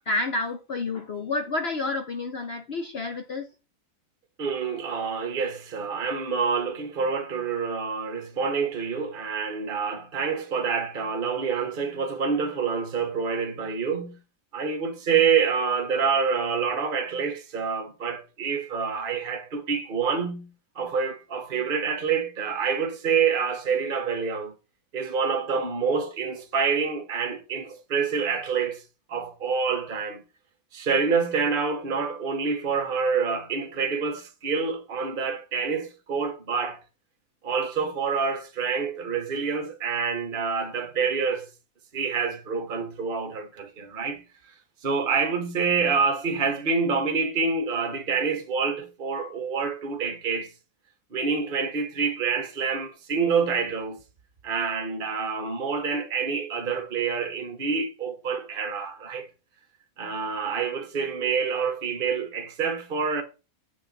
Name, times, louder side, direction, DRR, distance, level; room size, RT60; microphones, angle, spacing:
voice 1, 0.1-3.4, left 3 dB, 50° left, 0.9 m, -29 dB
voice 2, 4.4-14.2 14.5-20.5 20.7-24.5 24.9-28.8 29.1-30.2 30.7-36.8 37.4-41.5 41.9-44.2 44.8-50.5 51.1-54.0 54.4-59.3 60.0-63.2, right 5 dB, 40° right, 1.4 m, -27 dB
8.2 x 6.6 x 4.0 m
omnidirectional pair, 1.6 m